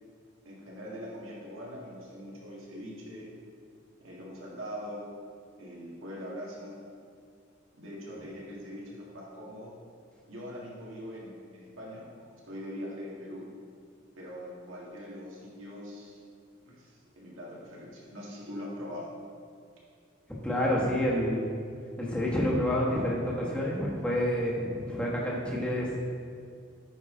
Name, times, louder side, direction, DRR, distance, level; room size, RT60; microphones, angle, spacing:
voice 1, 0.5-3.3 4.0-5.1 5.6-6.8 7.8-9.7 10.3-12.1 12.4-13.4 14.2-16.2 16.7-19.1, equal, 85° right, -4 dB, 1.8 m, -42 dB
voice 2, 20.4-21.4 22.0-25.9, equal, 5° left, -5 dB, 1.2 m, -28 dB
8.6 x 5.5 x 3.8 m, 2.3 s
head